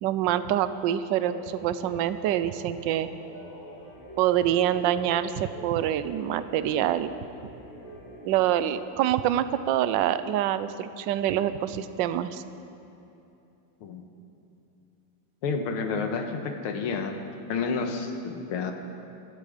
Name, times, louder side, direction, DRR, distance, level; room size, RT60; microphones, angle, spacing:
voice 1, 0.0-3.1 4.2-7.1 8.2-12.4, right 11 dB, 70° right, 12 dB, 1.2 m, -26 dB
sound 1, 1.1-8.8, equal, 25° left, 2.3 m, -45 dB
voice 2, 15.4-17.2 17.5-18.7, left 5 dB, 85° left, 5 dB, 2.0 m, -30 dB
18.0 x 13.0 x 5.0 m, 2.8 s
omnidirectional pair, 2.4 m